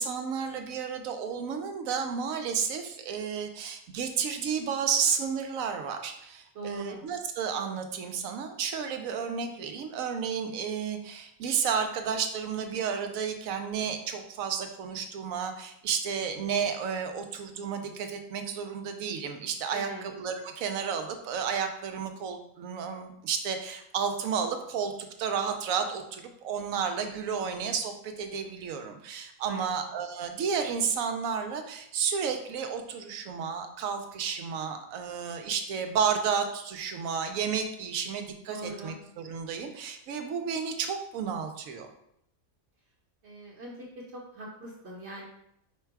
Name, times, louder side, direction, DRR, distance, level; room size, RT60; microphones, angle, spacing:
voice 1, 0.0-41.9, right 6 dB, 85° right, 6 dB, 1.0 m, -32 dB
voice 2, 6.5-7.0 19.7-20.1 29.4-29.8 38.5-39.0 43.2-45.3, right 1 dB, 55° right, -3 dB, 1.1 m, -41 dB
5.1 x 2.2 x 4.6 m, 0.77 s
omnidirectional pair, 1.4 m